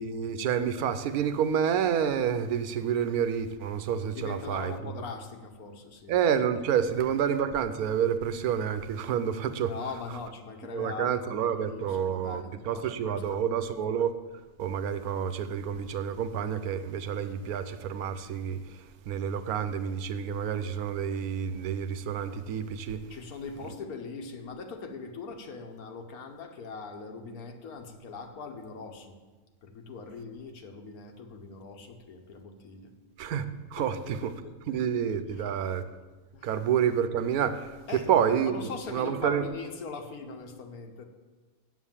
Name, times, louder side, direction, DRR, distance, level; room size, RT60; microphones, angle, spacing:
voice 1, 0.0-4.7 6.1-9.7 10.7-14.1 14.6-23.0 33.2-33.4 33.7-34.3 34.7-35.8 36.4-37.7 38.1-39.4, right 8 dB, 80° right, 1.2 m, -29 dB
voice 2, 4.1-6.1 6.6-7.1 9.6-13.4 23.1-29.2 29.6-32.9 33.8-34.8 35.3-35.6 36.3-36.5 37.9-38.1 38.4-41.0, left 4 dB, 80° left, 1.6 m, -41 dB
8.4 x 7.7 x 7.3 m
omnidirectional pair, 1.5 m